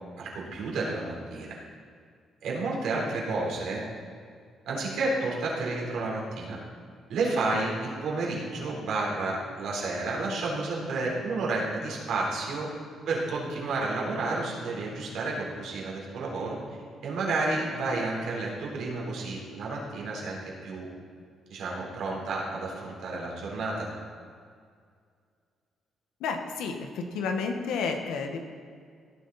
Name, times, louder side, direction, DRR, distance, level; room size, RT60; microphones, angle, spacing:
voice 1, 0.2-1.6 2.4-3.8 4.7-6.6 7.1-12.7 13.1-16.6 17.0-20.4 20.6-20.9 21.5-23.9, right 3 dB, 75° right, -3 dB, 3.9 m, -31 dB
voice 2, 26.2-28.4, left 5 dB, 90° left, 4 dB, 1.4 m, -31 dB
17.5 x 9.6 x 4.2 m, 2.1 s
cardioid pair, 90°, 0 cm